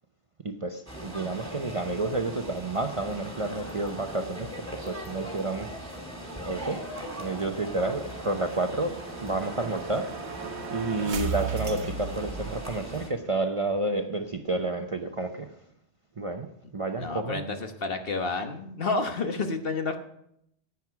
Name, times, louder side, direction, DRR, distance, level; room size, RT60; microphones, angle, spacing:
voice 1, 0.4-4.5 4.8-5.7 6.5-6.8 7.2-8.9 9.2-10.1 10.7-15.5 16.2-17.4, right 2 dB, 35° right, 6 dB, 0.7 m, -30 dB
sound 1, 0.9-13.1, equal, 15° right, 2.6 m, -39 dB
sound 2, 6.2-13.0, right 6 dB, 75° right, 1.2 m, -38 dB
voice 2, 17.0-20.0, left 3 dB, 55° left, 6 dB, 1.4 m, -30 dB
10.5 x 9.5 x 5.8 m, 0.73 s
omnidirectional pair, 1.2 m